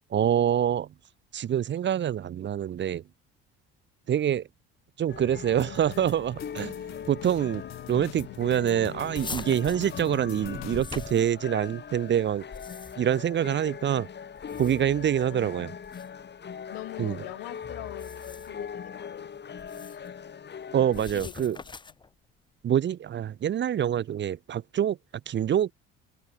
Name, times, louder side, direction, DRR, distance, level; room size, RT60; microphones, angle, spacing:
voice 1, 0.1-0.9 1.3-3.0 4.1-4.5 5.0-6.7 7.1-7.6 7.9-12.4 13.0-14.1 14.6-15.7 17.0-17.2 20.7-21.6 22.6-25.0 25.3-25.7, right 10 dB, 40° right, 0.7 m, -26 dB
sound 1, 5.1-21.1, left 7 dB, 35° left, 2.2 m, -41 dB
sound 2, 5.6-10.8, left 17 dB, 65° left, 0.7 m, -43 dB
sound 3, 9.1-11.8 12.3-13.2 14.3-15.0 15.8-16.1 17.9-18.6 19.6-20.1 20.9-22.1, left 4 dB, 15° left, 0.7 m, -42 dB
voice 2, 15.2-15.7 16.7-20.2 20.5-20.6 21.0-21.6, left 29 dB, 85° left, 3.0 m, -44 dB
supercardioid pair, 80°, 29 cm